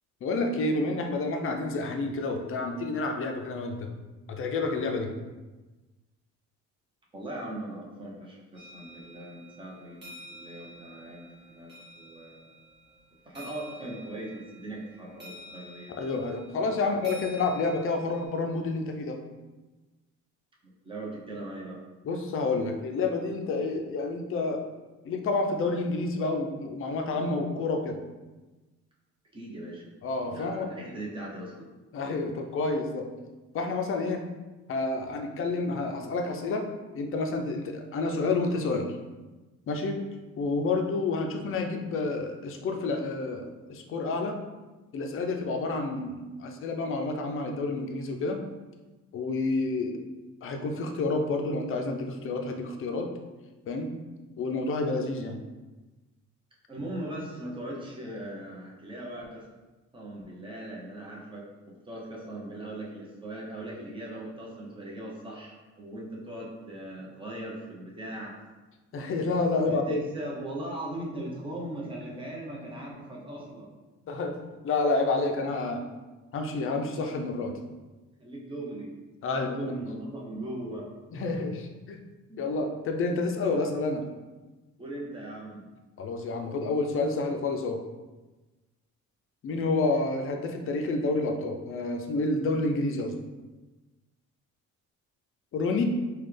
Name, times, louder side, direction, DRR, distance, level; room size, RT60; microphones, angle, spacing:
voice 1, 0.2-3.9 4.3-5.1 16.0-19.2 22.0-24.6 25.0-28.0 30.0-30.7 31.9-33.0 33.5-34.2 34.7-36.7 36.9-39.0 39.7-40.0 40.4-44.4 44.9-48.4 49.1-50.0 50.4-53.1 53.7-53.9 54.4-55.4 68.9-70.0 74.1-74.4 74.6-75.8 76.3-77.5 79.2-79.7 81.1-82.0 82.4-84.0 86.0-87.8 89.4-93.1 95.5-95.8, left 3 dB, 45° left, 4 dB, 0.5 m, -29 dB
voice 2, 7.1-12.9 13.3-15.9 16.8-17.0 20.8-21.8 29.3-29.9 30.3-31.7 56.7-59.4 59.9-61.4 61.9-68.3 69.7-73.7 78.2-78.9 79.3-80.9 82.3-82.4 83.0-83.1 84.8-85.6, right 1 dB, 15° right, -4 dB, 0.8 m, -39 dB
sound 1, 8.5-18.3, equal, 35° right, 1.4 m, -50 dB
4.0 x 2.3 x 3.3 m, 1.2 s
cardioid pair, 130°, 30 cm